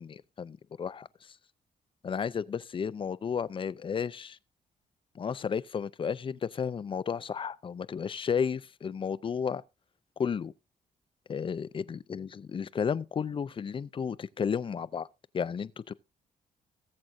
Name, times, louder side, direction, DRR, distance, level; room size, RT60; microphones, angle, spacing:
voice 1, 0.0-1.3 2.0-4.4 5.2-9.6 10.2-10.5 11.3-15.1 15.3-15.9, left 6 dB, 35° left, 0.5 m, -33 dB
18.5 x 7.6 x 2.6 m
cardioid pair, 110°, 15 cm